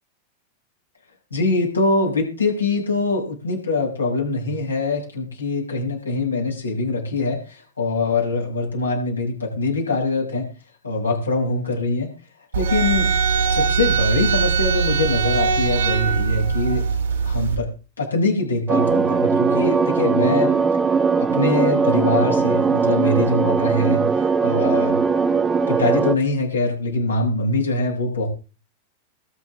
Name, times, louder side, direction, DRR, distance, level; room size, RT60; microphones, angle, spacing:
voice 1, 1.3-10.5 10.8-12.1 12.5-13.1 13.5-16.8 17.2-17.7 18.0-20.5 21.2-25.0 25.7-28.3, left 3 dB, 80° left, -2 dB, 6.9 m, -23 dB
sound 1, 12.5-17.6, right 6 dB, 65° right, 3.6 m, -21 dB
sound 2, 18.7-26.1, right 5 dB, 15° right, 1.2 m, -19 dB
21.5 x 8.1 x 3.8 m, 0.34 s
figure-of-eight pair, 90°, 0 cm